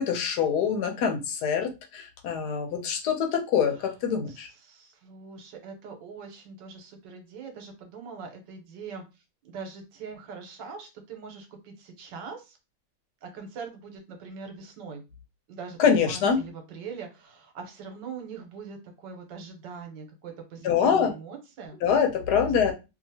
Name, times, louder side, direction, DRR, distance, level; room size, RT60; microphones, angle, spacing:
voice 1, 0.0-4.5 15.8-16.4 20.6-21.1 21.8-22.7, left 7 dB, 70° left, 4 dB, 1.2 m, -24 dB
voice 2, 4.3-9.0 9.4-12.6 13.2-15.0 15.5-21.8 22.6-22.7, right 5 dB, 85° right, 4 dB, 1.4 m, -42 dB
2.8 x 2.8 x 2.7 m, 0.27 s
omnidirectional pair, 1.9 m